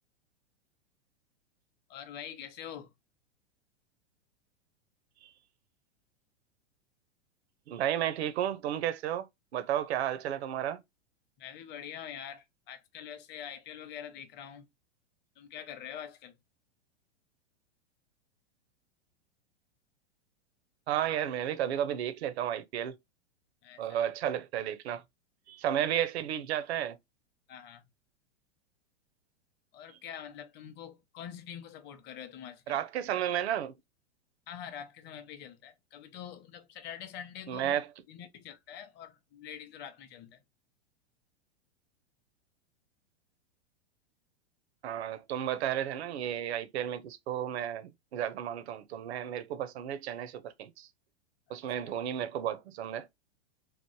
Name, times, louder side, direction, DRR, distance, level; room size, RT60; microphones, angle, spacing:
voice 1, 1.9-2.9 11.4-14.7 15.4-16.3 23.6-23.8 27.5-27.8 29.7-32.8 34.5-37.7 38.1-40.4 51.5-51.6 51.9-52.0, left 9 dB, 30° left, 0.6 m, -45 dB
voice 2, 7.7-9.3 9.5-10.8 20.9-22.9 23.8-25.0 25.5-27.0 29.9-30.0 32.7-33.7 37.5-37.9 44.8-50.9 51.5-53.1, right 10 dB, 70° right, 0.6 m, -33 dB
3.0 x 2.0 x 3.0 m
hypercardioid pair, 110°, 33 cm